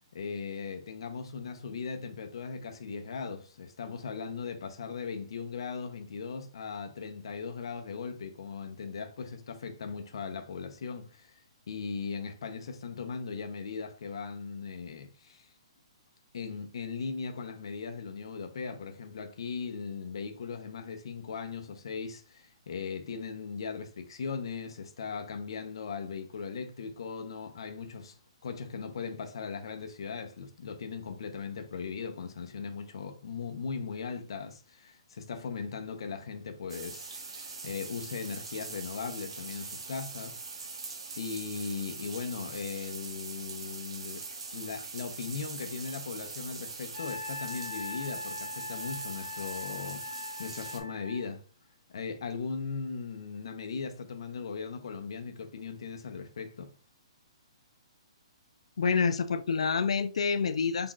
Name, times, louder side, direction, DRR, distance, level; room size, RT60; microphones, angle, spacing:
voice 1, 0.1-15.5 16.3-40.6 41.1-44.3 44.5-51.4 51.9-56.7, left 5 dB, 55° left, 0.8 m, -38 dB
sound 1, 36.7-50.8, right 4 dB, 60° right, 1.3 m, -42 dB
Wind instrument woodwind instrument, 46.9-51.2, left 2 dB, 30° left, 1.1 m, -41 dB
voice 2, 58.8-60.9, left 5 dB, 80° left, 0.4 m, -27 dB
5.8 x 3.8 x 2.4 m
hypercardioid pair, 180°, 3 cm